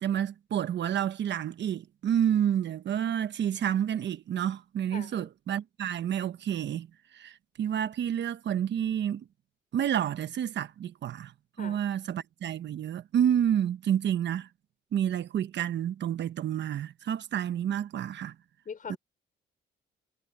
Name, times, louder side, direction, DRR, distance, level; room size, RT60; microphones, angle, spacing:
voice 1, 0.0-6.9 7.1-9.3 9.7-11.3 11.6-14.5 14.9-18.3 18.9-19.0, right 9 dB, 65° right, 1.2 m, -29 dB
voice 2, 4.9-5.3 11.6-11.8 18.7-19.0, left 6 dB, 45° left, 4.3 m, -41 dB
cardioid pair, 90°, 20 cm